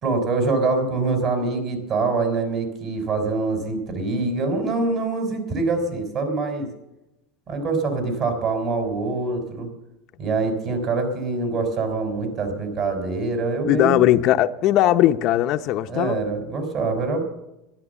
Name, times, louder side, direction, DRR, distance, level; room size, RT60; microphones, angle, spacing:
voice 1, 0.0-6.7 7.5-9.7 10.2-14.1 15.9-17.2, right 3 dB, 45° right, 5.3 m, -24 dB
voice 2, 13.6-16.2, left 13 dB, 50° left, 0.7 m, -19 dB
13.5 x 12.0 x 7.0 m
supercardioid pair, 125°, 0 cm